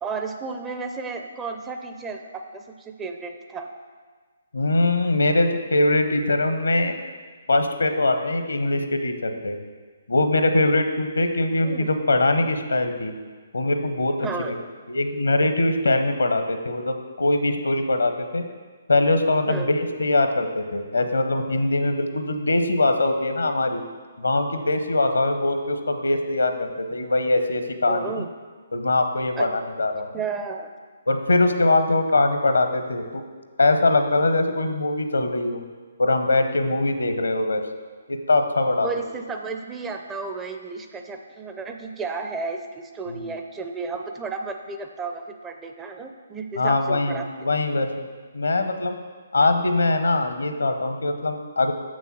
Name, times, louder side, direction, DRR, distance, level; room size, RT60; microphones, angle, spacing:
voice 1, 0.0-3.7 11.5-11.9 14.2-14.5 19.5-19.8 27.9-28.3 29.4-29.5 30.1-30.7 38.8-47.2 47.5-47.6, right 4 dB, 15° right, 4 dB, 0.5 m, -33 dB
voice 2, 4.5-6.9 7.5-9.6 10.1-13.1 13.5-14.6 14.9-18.5 18.9-23.8 24.2-28.1 28.7-30.1 31.1-33.2 33.6-35.6 36.0-37.6 38.1-38.9 43.1-43.3 46.6-48.1 48.3-49.0 49.3-51.7, left 2 dB, 70° left, 7 dB, 0.8 m, -22 dB
6.9 x 6.3 x 6.1 m, 1.5 s
figure-of-eight pair, 135°, 0 cm